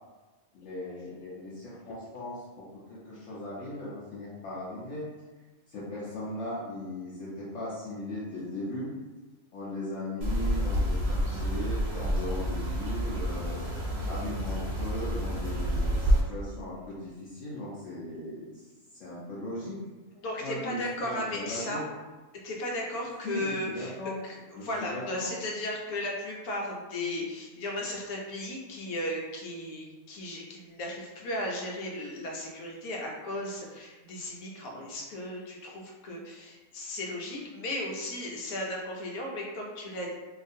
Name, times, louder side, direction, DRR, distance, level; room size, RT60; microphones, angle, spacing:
voice 1, 0.5-2.4 2.9-5.1 5.7-8.9 9.5-13.6 14.0-18.6 19.0-19.8 20.4-21.9 23.2-24.1 24.6-25.3, left 1 dB, 65° left, -9 dB, 1.0 m, -38 dB
sound 1, 10.2-16.2, equal, 65° right, 0.6 m, -29 dB
voice 2, 20.2-21.8 22.4-24.0 24.2-40.1, left 1 dB, 90° left, -1 dB, 1.1 m, -35 dB
2.8 x 2.4 x 2.6 m, 1.2 s
omnidirectional pair, 1.5 m